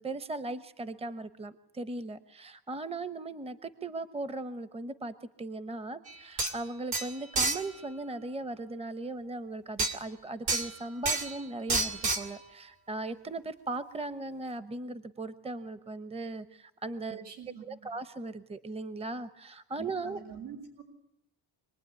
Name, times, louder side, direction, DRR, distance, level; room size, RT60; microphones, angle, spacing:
voice 1, 0.0-17.3 17.6-20.2, right 2 dB, 15° right, 12 dB, 1.0 m, -38 dB
sound 1, 6.1-6.2 6.4-6.6 6.9-7.7 9.8-10.0 10.5-10.7 11.0-11.4 11.7-12.3, right 3 dB, 65° right, 2.6 m, -29 dB
voice 2, 17.1-17.9 19.8-20.8, right 7 dB, 85° right, 4 dB, 7.9 m, -46 dB
26.5 x 20.0 x 9.7 m, 0.78 s
cardioid pair, 135°, 41 cm